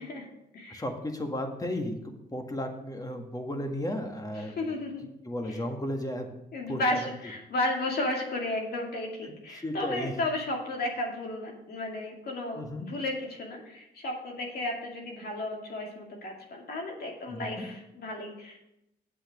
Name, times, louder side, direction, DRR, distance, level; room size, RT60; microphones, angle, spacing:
voice 1, 0.0-0.8 4.4-5.0 5.4-5.6 6.5-18.6, left 2 dB, 60° left, 0 dB, 2.3 m, -33 dB
voice 2, 0.7-4.5 5.2-6.3 6.7-7.1 9.6-10.1 12.6-12.9 17.3-17.6, left 1 dB, 20° left, 3 dB, 1.8 m, -34 dB
7.8 x 6.5 x 6.4 m, 0.85 s
supercardioid pair, 65°, 18 cm